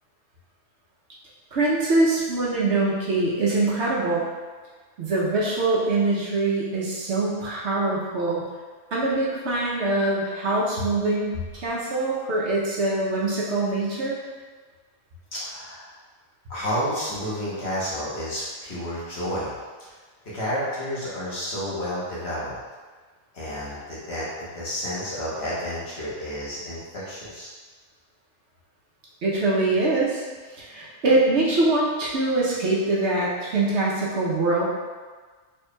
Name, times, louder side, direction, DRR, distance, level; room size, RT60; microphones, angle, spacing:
voice 1, 1.5-4.2 5.0-8.4 8.9-14.2 29.2-30.2 30.5-34.6, right 2 dB, 60° right, -5 dB, 0.9 m, -23 dB
voice 2, 15.3-15.9 16.5-19.5 19.8-19.9 20.2-22.6 23.3-27.5, equal, 55° left, -8 dB, 1.3 m, -30 dB
4.4 x 3.2 x 2.2 m, 1.5 s
omnidirectional pair, 1.4 m